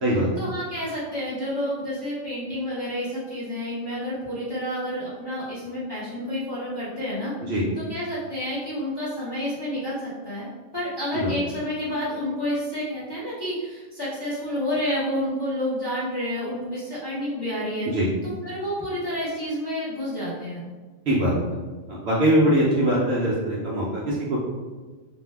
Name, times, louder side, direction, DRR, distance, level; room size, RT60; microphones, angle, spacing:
voice 1, 0.4-10.5 10.7-17.9 18.2-20.6, equal, 25° left, -9 dB, 0.6 m, -29 dB
voice 2, 21.1-21.5 21.9-24.4, equal, 60° right, -5 dB, 0.7 m, -22 dB
2.6 x 2.1 x 3.3 m, 1.3 s
omnidirectional pair, 1.4 m